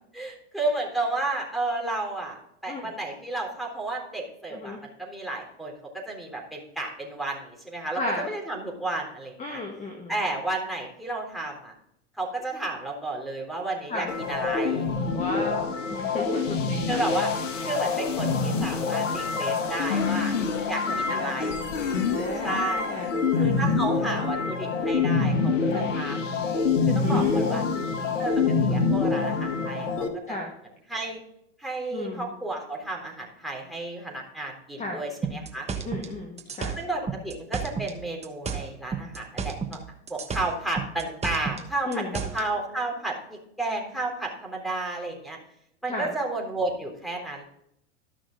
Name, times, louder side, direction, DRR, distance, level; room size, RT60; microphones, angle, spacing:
voice 1, 0.1-9.6 10.1-11.7 12.2-14.9 16.5-17.3 17.6-20.3 20.7-21.6 22.4-22.8 23.4-26.2 26.9-27.6 28.2-28.3 28.6-30.4 30.9-31.2 31.6-35.7 36.8-39.8 40.1-45.4 45.8-47.4, right 2 dB, ahead, 0 dB, 3.7 m, -32 dB
voice 2, 7.9-8.3 9.4-10.1 13.9-14.1 15.1-17.1 20.9-21.8 22.0-23.6 25.7-26.0 27.0-27.9 30.3-30.5 31.9-32.3 34.8-35.0 35.8-36.7 41.8-42.2 45.9-46.1, left 2 dB, 20° left, 2 dB, 1.6 m, -34 dB
sound 1, 14.1-30.1, left 4 dB, 80° left, 1.6 m, -26 dB
sound 2, 35.2-38.0 38.2-39.8 40.1-42.4, right 5 dB, 15° right, 1.1 m, -32 dB
13.5 x 6.2 x 3.9 m, 0.76 s
hypercardioid pair, 95°, 38 cm